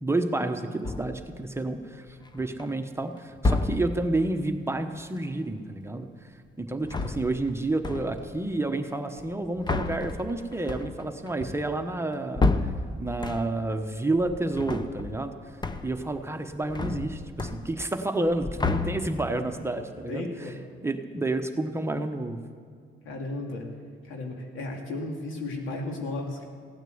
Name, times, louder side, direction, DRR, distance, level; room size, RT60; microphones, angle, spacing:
voice 1, 0.0-6.1 6.6-12.7 13.0-15.3 15.8-20.3 20.8-22.4, right 2 dB, 15° right, 6 dB, 1.1 m, -30 dB
sound 1, 0.8-1.3 2.1-2.6 3.4-4.1 6.7-7.6 7.8-8.4 9.2-13.8 14.1-15.3 15.6-16.1 16.4-18.0 18.3-19.4, left 3 dB, 20° left, 0.8 m, -30 dB
voice 2, 20.1-20.6 23.0-23.7 24.0-26.4, left 2 dB, 85° left, 1 dB, 2.3 m, -34 dB
16.5 x 9.0 x 7.9 m, 2.2 s
cardioid pair, 90°, 20 cm